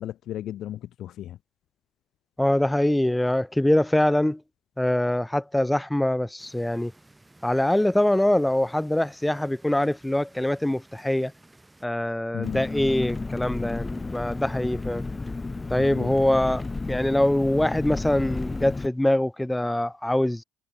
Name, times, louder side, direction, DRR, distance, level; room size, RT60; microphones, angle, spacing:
voice 1, 0.0-1.4 12.3-12.6 15.8-16.1, left 12 dB, 65° left, 0.6 m, -35 dB
voice 2, 2.4-4.4 4.8-6.9 7.4-11.3 11.8-15.0 15.7-20.4, left 1 dB, 5° left, 0.5 m, -23 dB
sound 1, 6.4-11.9, right 2 dB, 15° right, 2.5 m, -55 dB
Engine, 12.4-18.9, left 3 dB, 25° left, 1.0 m, -32 dB
hypercardioid pair, 55°, 0 cm